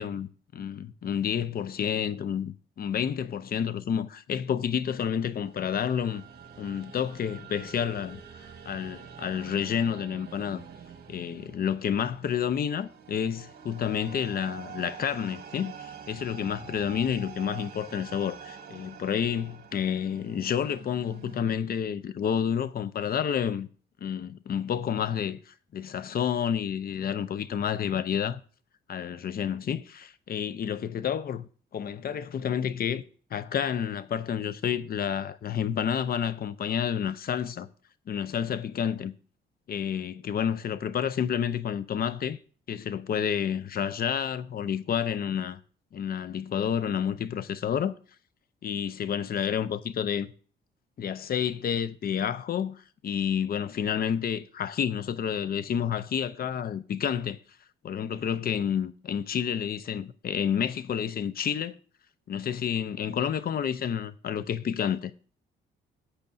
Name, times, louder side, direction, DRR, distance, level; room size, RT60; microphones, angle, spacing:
voice 1, 0.0-6.2 6.6-10.6 11.1-23.7 24.0-28.4 28.9-33.0 33.3-37.7 38.1-39.1 39.7-42.4 42.7-45.6 45.9-47.9 48.6-50.3 51.0-57.4 57.8-61.8 62.3-65.1, left 8 dB, 50° left, 0.6 m, -30 dB
sound 1, 4.9-21.4, right 7 dB, 50° right, 1.5 m, -46 dB
13.5 x 8.2 x 2.6 m
cardioid pair, 90°, 20 cm